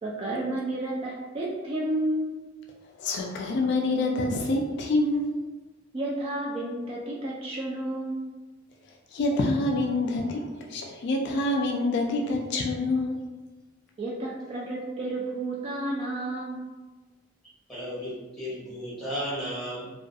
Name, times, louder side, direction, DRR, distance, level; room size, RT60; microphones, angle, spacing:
voice 1, 0.0-2.4 5.9-8.2 14.0-16.6, right 1 dB, 30° right, -3 dB, 0.3 m, -31 dB
voice 2, 3.0-5.4 9.1-13.1, left 2 dB, 60° left, 1 dB, 0.3 m, -26 dB
voice 3, 17.7-19.9, equal, ahead, -9 dB, 1.0 m, -34 dB
2.3 x 2.3 x 2.6 m, 1.2 s
head